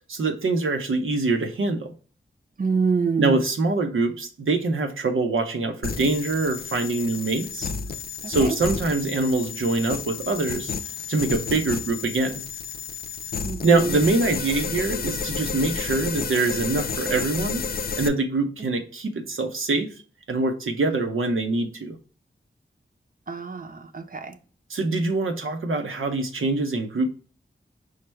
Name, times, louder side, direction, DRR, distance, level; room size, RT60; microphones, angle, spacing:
voice 1, 0.1-1.9 3.2-7.7 8.3-10.7 11.1-12.4 13.6-17.6 18.0-19.9 20.3-22.0 24.7-27.1, right 3 dB, 90° right, 0.7 m, -24 dB
voice 2, 2.6-3.4 8.2-8.5 13.4-14.0 23.3-24.4, right 4 dB, 45° right, 0.6 m, -26 dB
sound 1, 5.8-18.1, left 5 dB, 50° left, 0.4 m, -31 dB
4.9 x 2.1 x 4.4 m
wide cardioid pair, 60°, 20 cm